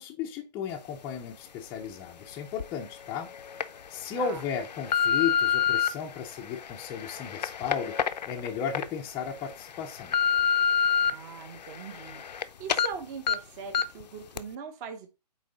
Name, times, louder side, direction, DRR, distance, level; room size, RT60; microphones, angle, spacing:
voice 1, 0.0-3.3 3.9-10.1, left 7 dB, 15° left, 0.5 m, -34 dB
sound 1, 2.6-2.7 3.3-3.6 4.3-5.9 6.5-8.8 9.3-9.4 9.8-11.1 11.5-12.4 12.7-12.9 13.3-13.4 13.7-14.0 14.4-14.5, left 8 dB, 75° left, 0.6 m, -26 dB
voice 2, 11.0-12.2 12.6-15.1, right 6 dB, 25° right, 0.7 m, -40 dB
8.4 x 3.1 x 4.0 m
hypercardioid pair, 140°, 21 cm